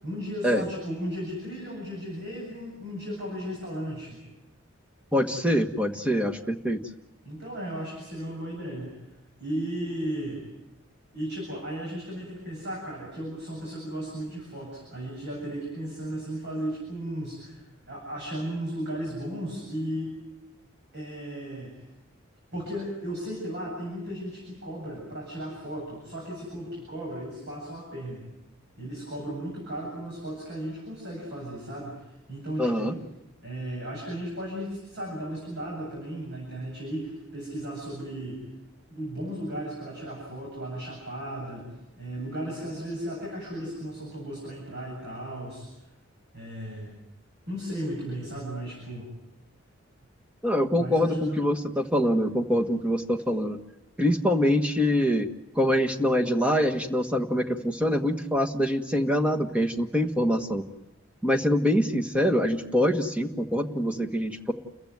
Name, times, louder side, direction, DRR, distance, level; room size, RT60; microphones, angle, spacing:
voice 1, 0.0-4.2 7.2-8.9 9.4-10.4 11.1-20.2 20.9-21.7 22.5-28.3 28.8-31.9 32.3-32.9 33.4-38.4 38.9-41.7 42.0-45.7 46.3-47.0 47.5-49.1 50.8-51.4, right 1 dB, 55° right, -2 dB, 7.9 m, -35 dB
voice 2, 5.1-6.8 32.6-33.0 50.4-53.6 54.0-55.3 55.6-60.6 61.2-64.5, equal, 5° right, 3 dB, 1.5 m, -24 dB
30.0 x 15.0 x 9.4 m, 0.98 s
head